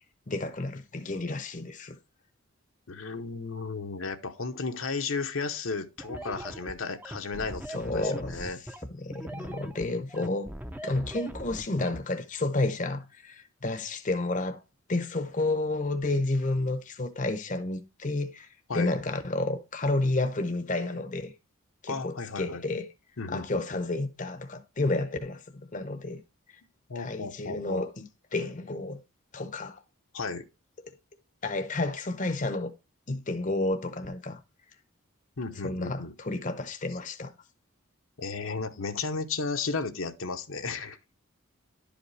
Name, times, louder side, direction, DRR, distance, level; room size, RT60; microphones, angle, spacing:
voice 1, 0.3-2.0 7.7-8.5 8.9-10.5 10.8-14.6 14.9-18.5 18.7-21.3 21.8-22.9 23.3-26.2 27.0-29.0 29.3-29.8 31.4-32.7 33.1-34.4 35.6-37.3, left 2 dB, 35° left, 0.7 m, -31 dB
voice 2, 2.9-8.6 18.7-18.9 21.9-22.6 23.2-23.6 26.9-27.9 30.1-30.4 35.4-36.1 38.2-41.0, left 4 dB, 70° left, 0.9 m, -34 dB
sound 1, 6.0-12.0, right 1 dB, 10° right, 0.5 m, -40 dB
11.5 x 5.1 x 3.2 m
head